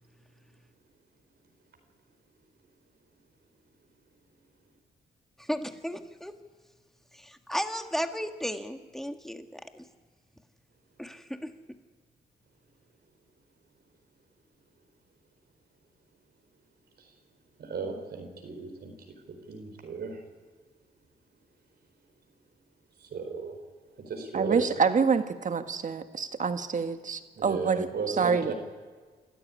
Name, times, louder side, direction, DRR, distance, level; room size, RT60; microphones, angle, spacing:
voice 1, 5.4-6.3 7.1-9.8 11.0-11.5, equal, ahead, 6 dB, 1.8 m, -34 dB
voice 2, 17.6-18.9 19.3-20.2 23.0-23.6 24.0-24.6 27.4-28.5, right 5 dB, 65° right, 4 dB, 4.5 m, -35 dB
voice 3, 24.3-28.5, right 5 dB, 45° right, 8 dB, 1.6 m, -27 dB
27.5 x 13.0 x 10.0 m, 1.5 s
cardioid pair, 80°, 18 cm